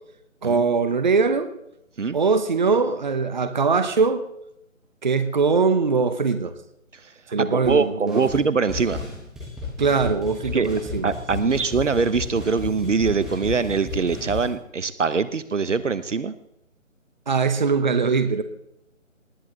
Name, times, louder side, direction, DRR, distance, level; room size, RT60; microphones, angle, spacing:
voice 1, 0.4-1.5 2.1-4.2 5.0-6.5 7.3-8.2 9.8-11.1 17.3-18.4, right 4 dB, 35° right, 11 dB, 0.8 m, -21 dB
voice 2, 7.4-9.0 10.5-10.7 11.0-16.3, right 5 dB, 65° right, 15 dB, 0.9 m, -23 dB
sound 1, 7.6-7.8 8.1-8.4 8.7-14.5, left 3 dB, ahead, 1.3 m, -34 dB
19.0 x 9.6 x 3.9 m, 0.79 s
figure-of-eight pair, 160°, 40 cm